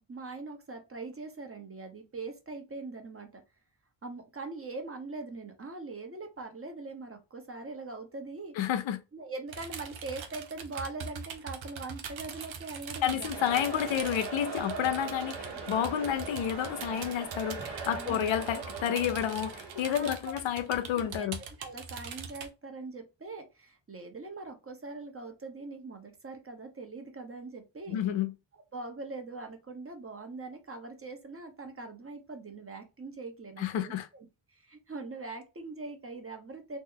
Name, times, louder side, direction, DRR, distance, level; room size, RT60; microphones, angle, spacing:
voice 1, 0.1-3.4 4.0-8.5 9.1-13.3 15.4-15.6 17.9-18.2 19.9-20.3 20.9-21.3 21.6-28.0 28.7-36.8, right 3 dB, 30° right, 0.9 m, -42 dB
voice 2, 8.6-9.0 13.0-21.4 27.9-28.3 33.6-34.1, left 10 dB, 80° left, 0.6 m, -30 dB
sound 1, 9.5-22.5, right 5 dB, 90° right, 0.7 m, -43 dB
sound 2, 13.3-20.1, right 5 dB, 60° right, 1.2 m, -40 dB
3.1 x 2.1 x 3.6 m
cardioid pair, 70°, 45 cm